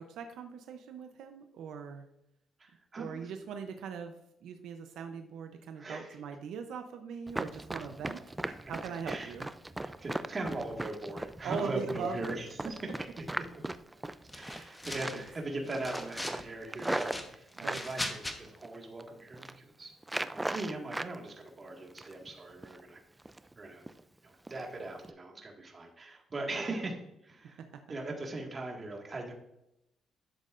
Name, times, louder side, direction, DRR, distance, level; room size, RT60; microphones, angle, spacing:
voice 1, 0.0-2.1 2.9-4.2 4.4-8.2 8.7-9.5 11.4-12.3 14.5-14.8 17.6-17.8, right 6 dB, 80° right, 6 dB, 0.7 m, -40 dB
voice 2, 2.6-3.3 5.8-6.2 8.6-8.7 9.1-9.3 9.8-12.9 13.2-13.4 14.3-19.9 20.3-23.0 23.6-23.8 24.2-27.6 27.9-29.3, right 2 dB, 30° right, 1 dB, 1.8 m, -40 dB
Run, 7.3-14.7 15.0-15.4 15.7-17.9 18.4-19.0 19.3-19.6 20.0-21.1 21.5-22.3 22.6-22.8 23.2-23.5 23.9-24.0 24.5-24.6 25.0-25.1, right 2 dB, 10° right, 0.4 m, -38 dB
sound 1, 14.3-15.3 15.7-16.4 16.8-18.4, left 1 dB, 10° left, 1.1 m, -40 dB
11.5 x 7.5 x 2.5 m, 0.85 s
cardioid pair, 120°, 0 cm